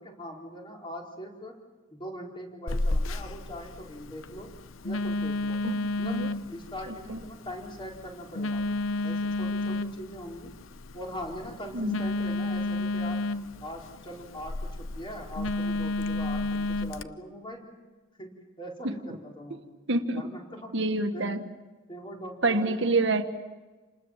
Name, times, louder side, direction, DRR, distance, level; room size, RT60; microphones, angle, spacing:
voice 1, 0.0-1.5 1.9-4.5 4.8-5.6 6.0-6.2 6.5-8.6 9.0-10.5 10.9-13.2 13.6-17.7 18.2-18.3 18.6-19.6 20.1-20.7 21.1-21.3 21.9-23.0, equal, 25° left, 0 dB, 4.5 m, -41 dB
Telephone, 2.7-17.0, left 2 dB, 85° left, 0.9 m, -32 dB
voice 2, 5.6-6.3 6.9-7.2 11.7-12.0 18.8-19.0 19.9-20.3 20.7-21.4 22.4-23.2, right 2 dB, 65° right, 7 dB, 1.7 m, -27 dB
29.0 x 20.0 x 7.4 m, 1.3 s
head